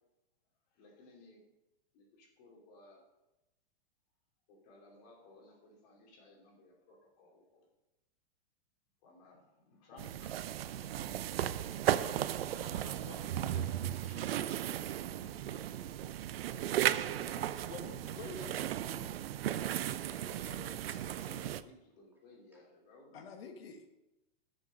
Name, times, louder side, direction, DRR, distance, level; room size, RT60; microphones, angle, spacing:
voice 1, 0.7-1.4 1.9-3.0 4.5-7.7 9.0-16.0 17.5-17.7 19.9-23.3, left 2 dB, 40° left, 0 dB, 3.0 m, -57 dB
sound 1, 10.0-21.6, right 11 dB, 80° right, 0.6 m, -35 dB
voice 2, 16.4-18.1 18.4-19.4 22.5-22.6, equal, 5° right, -4 dB, 2.2 m, -54 dB
voice 3, 18.1-18.6 23.1-23.9, left 4 dB, 85° left, 5 dB, 1.6 m, -46 dB
12.5 x 6.5 x 5.3 m, 0.98 s
supercardioid pair, 160°, 30 cm